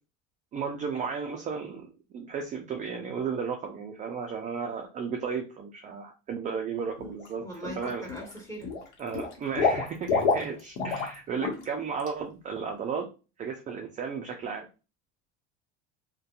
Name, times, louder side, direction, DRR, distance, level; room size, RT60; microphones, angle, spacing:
voice 1, 0.5-7.4 7.8-8.1 9.0-13.1 13.4-14.7, right 6 dB, 25° right, 2 dB, 0.3 m, -34 dB
Water / Liquid, 7.0-7.3 7.6-8.3 8.6-11.1 11.4-11.6 12.0-12.1, left 4 dB, 85° left, 0.9 m, -28 dB
voice 2, 7.4-8.7 9.1-9.4, right 1 dB, 10° left, -1 dB, 1.3 m, -41 dB
2.6 x 2.2 x 2.3 m, 0.31 s
supercardioid pair, 115°, 33 cm